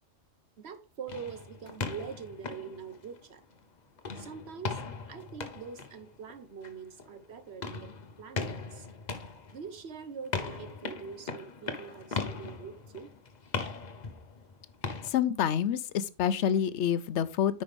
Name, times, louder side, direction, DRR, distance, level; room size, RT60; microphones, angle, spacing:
voice 1, 0.6-3.4 4.2-4.8 5.1-7.9 8.2-8.9 9.5-13.1, right 6 dB, 60° right, 1.2 m, -44 dB
sound 1, 1.1-3.6 4.0-15.1, left 4 dB, 40° left, 0.9 m, -39 dB
voice 2, 15.0-17.6, left 9 dB, 70° left, 0.9 m, -27 dB
9.7 x 5.3 x 3.5 m
omnidirectional pair, 1.3 m